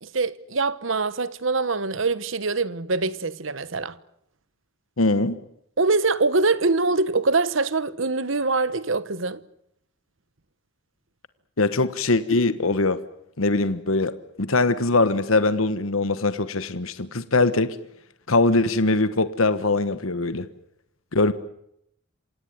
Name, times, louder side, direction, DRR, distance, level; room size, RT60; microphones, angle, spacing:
voice 1, 0.0-4.0 5.8-9.4, right 3 dB, 65° right, 1.1 m, -24 dB
voice 2, 5.0-5.4 11.6-13.0 13.4-17.8 18.3-20.5 21.1-21.3, left 2 dB, 85° left, 1.3 m, -22 dB
27.0 x 18.0 x 9.5 m
head